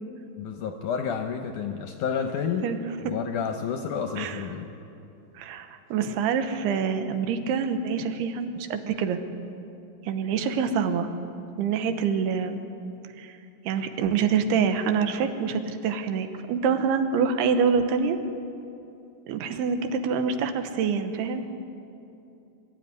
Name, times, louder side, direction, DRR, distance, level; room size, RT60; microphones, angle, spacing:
voice 1, 0.4-2.7 3.0-4.7, left 6 dB, 75° left, 5 dB, 1.9 m, -30 dB
voice 2, 5.4-9.2 10.0-11.1 11.6-12.6 13.2-13.4 13.6-18.2 19.3-21.4, right 6 dB, 85° right, 7 dB, 3.2 m, -26 dB
24.0 x 12.5 x 9.7 m, 2.8 s
omnidirectional pair, 4.5 m